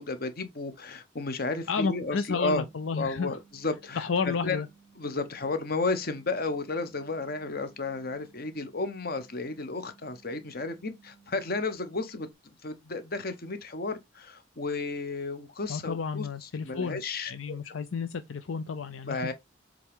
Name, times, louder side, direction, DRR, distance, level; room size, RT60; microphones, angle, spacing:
voice 1, 0.0-2.6 2.9-4.6 5.0-12.3 12.6-17.6 19.1-19.3, left 3 dB, 50° left, 1.2 m, -33 dB
voice 2, 1.7-3.4 4.0-4.7 15.7-19.3, left 5 dB, 80° left, 0.6 m, -31 dB
sound 1, 1.7-12.3, right 6 dB, 25° left, 1.6 m, -60 dB
7.4 x 3.8 x 3.6 m
head